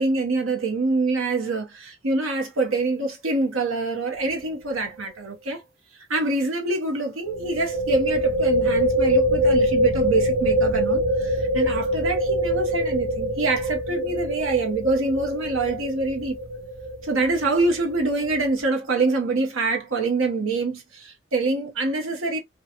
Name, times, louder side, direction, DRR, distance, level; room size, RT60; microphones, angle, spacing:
voice 1, 0.0-5.6 6.1-16.4 17.0-22.4, right 3 dB, 85° right, 1.1 m, -25 dB
sound 1, 4.2-4.4 4.7-4.8 7.3-18.6, equal, 50° right, 0.7 m, -24 dB
3.6 x 2.4 x 2.8 m
head